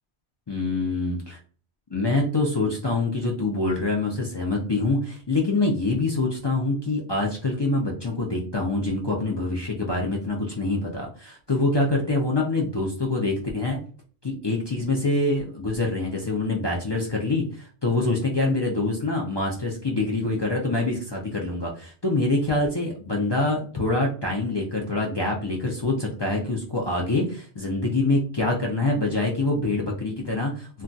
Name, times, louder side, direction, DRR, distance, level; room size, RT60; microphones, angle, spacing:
voice 1, 0.5-1.4 1.9-13.8 14.2-30.8, left 2 dB, 40° left, -2 dB, 0.4 m, -25 dB
2.3 x 2.3 x 3.9 m, 0.41 s
omnidirectional pair, 1.1 m